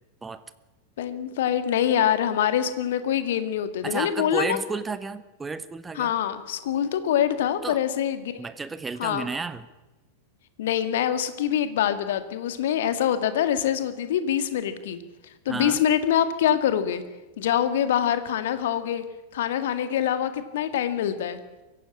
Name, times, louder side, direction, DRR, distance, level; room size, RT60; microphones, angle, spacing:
voice 1, 1.0-4.6 6.0-8.4 9.0-9.2 10.6-15.0 15.5-17.0 17.4-19.0 19.3-21.4, left 10 dB, 55° left, 10 dB, 1.9 m, -25 dB
voice 2, 3.8-6.1 7.6-7.8 8.4-9.7 15.5-15.8, right 4 dB, 15° right, 13 dB, 0.9 m, -32 dB
23.5 x 16.0 x 8.6 m, 1.1 s
figure-of-eight pair, 90°, 0 cm